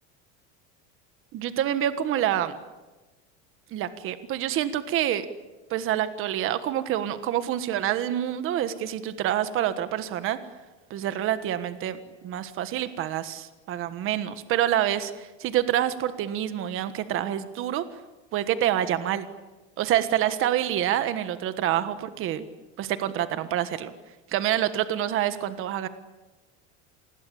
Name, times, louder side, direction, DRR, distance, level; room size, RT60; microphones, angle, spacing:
voice 1, 1.3-2.5 3.7-5.2 5.7-10.4 10.9-12.0 12.2-17.8 18.3-19.3 19.8-22.4 22.8-23.9 24.3-25.9, right 11 dB, 35° right, 11 dB, 1.4 m, -27 dB
28.0 x 21.0 x 8.7 m, 1.2 s
cardioid pair, 165°, 36 cm